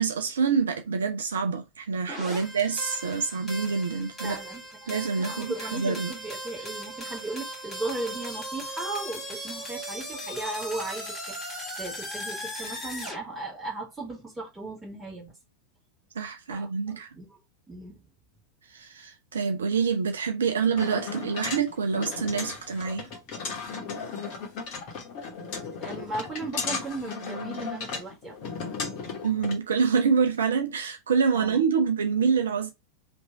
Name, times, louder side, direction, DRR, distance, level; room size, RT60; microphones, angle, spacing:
voice 1, 0.0-4.4 4.9-6.1 16.1-17.1 18.7-23.1 29.2-32.7, right 5 dB, 65° right, 0.4 m, -26 dB
sound 1, 2.1-13.2, equal, 15° left, 1.6 m, -38 dB
voice 2, 4.2-15.3 16.5-17.3 17.7-18.0 25.8-28.3 31.3-31.6, right 2 dB, 15° right, 1.7 m, -37 dB
sound 2, 20.8-29.6, left 5 dB, 40° left, 1.0 m, -35 dB
3.0 x 2.6 x 4.4 m
figure-of-eight pair, 90°, 0 cm